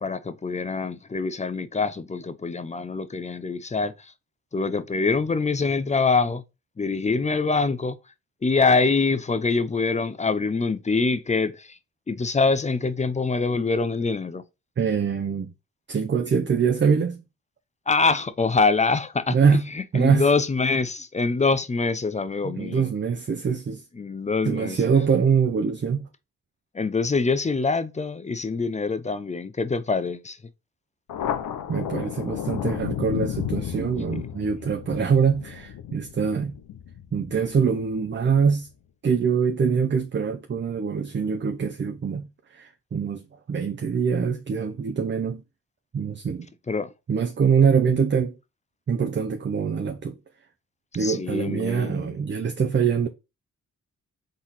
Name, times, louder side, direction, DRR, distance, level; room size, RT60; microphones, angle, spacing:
voice 1, 0.0-4.1 4.5-6.4 6.8-8.0 8.4-11.8 12.1-14.4 17.9-22.9 24.0-24.8 26.7-30.4 46.7-46.9 51.0-52.2, left 4 dB, 20° left, 0.5 m, -24 dB
voice 2, 14.8-15.5 15.9-17.2 19.3-20.3 22.4-23.8 24.4-26.1 31.7-36.5 37.1-38.7 39.0-42.3 42.5-45.4 45.9-46.5 47.1-48.3 48.9-50.2 50.9-53.1, right 6 dB, 35° right, 0.6 m, -24 dB
Thunder, 31.1-38.1, left 10 dB, 80° left, 0.6 m, -33 dB
3.8 x 3.1 x 4.0 m
cardioid pair, 60°, 33 cm